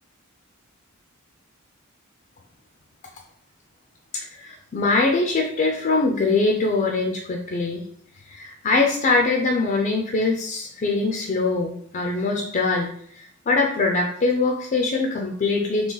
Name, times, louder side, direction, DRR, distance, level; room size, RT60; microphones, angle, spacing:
voice 1, 4.1-7.8 8.2-15.9, left 3 dB, 35° left, 1 dB, 0.4 m, -23 dB
3.8 x 2.9 x 3.8 m, 0.66 s
head